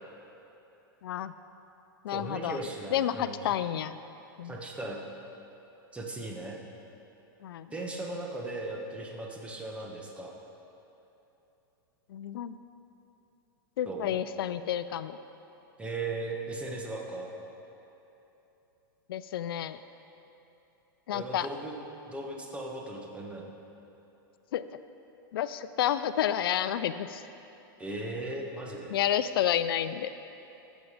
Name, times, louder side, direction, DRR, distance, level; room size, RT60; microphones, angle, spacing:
voice 1, 1.0-1.3 2.0-2.6 2.9-4.0 4.4-4.5 7.4-7.7 12.1-12.6 13.8-15.2 19.1-19.8 21.1-21.5 24.5-24.7 25.3-27.2 28.9-30.1, left 10 dB, 75° left, 13 dB, 0.4 m, -30 dB
voice 2, 2.1-3.5 4.4-5.0 5.9-6.6 7.7-10.3 13.8-14.2 15.8-17.3 21.1-21.8 22.1-23.5 27.8-29.0, right 2 dB, 10° right, 0 dB, 1.2 m, -37 dB
14.0 x 7.2 x 4.9 m, 3.0 s
hypercardioid pair, 140°, 12 cm